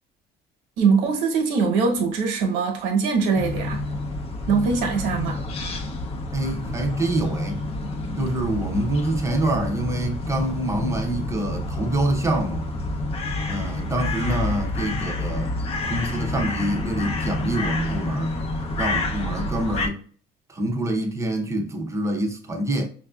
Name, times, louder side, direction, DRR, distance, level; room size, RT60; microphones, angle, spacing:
voice 1, 0.8-3.9 4.5-5.5, right 5 dB, 85° right, 1.2 m, -22 dB
sound 1, 3.3-19.9, left 2 dB, 35° left, 0.6 m, -28 dB
voice 2, 6.3-7.6 8.2-12.7 13.5-15.5 15.9-18.4 18.8-20.0 20.5-22.9, right 1 dB, 15° right, 0.6 m, -26 dB
5.7 x 2.5 x 2.3 m
cardioid pair, 145°, 18 cm